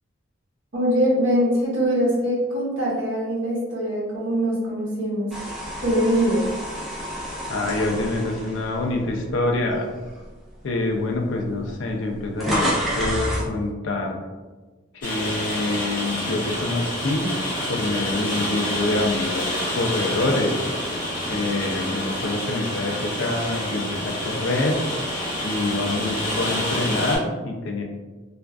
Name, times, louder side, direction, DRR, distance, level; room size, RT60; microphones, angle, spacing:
voice 1, 0.7-5.3 5.8-6.4, equal, 75° right, -6 dB, 0.9 m, -22 dB
sound 1, 5.3-9.5 10.1-10.3 11.2-11.3 11.5-13.5, equal, ahead, 0.4 m, -29 dB
voice 2, 7.5-9.9 10.6-14.2 14.9-17.3 17.7-20.6 21.3-24.8 25.4-27.8, left 2 dB, 70° left, 2 dB, 0.4 m, -26 dB
Rain, 15.0-27.2, left 1 dB, 40° left, 1.0 m, -28 dB
2.4 x 2.2 x 2.3 m, 1.3 s
head